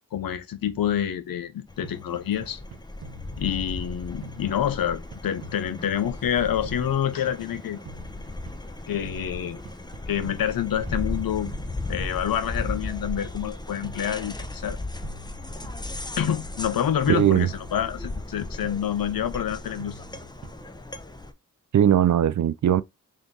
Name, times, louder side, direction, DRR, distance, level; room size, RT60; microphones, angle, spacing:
voice 1, 0.1-2.6 3.4-7.8 8.9-9.6 10.1-11.5 11.9-14.8 16.2-20.0, left 10 dB, 75° left, 0.7 m, -27 dB
sound 1, 1.7-21.3, left 2 dB, 10° left, 0.7 m, -36 dB
sound 2, 1.8-3.9 4.2-6.4 6.6-8.8 9.0-11.1 11.4-13.4 13.8-15.9 16.2-18.3 18.6-20.8, right 2 dB, 80° right, 0.9 m, -45 dB
voice 2, 17.1-17.5 21.7-22.8, right 10 dB, 55° right, 0.5 m, -19 dB
3.6 x 2.6 x 3.7 m
cardioid pair, 45°, 35 cm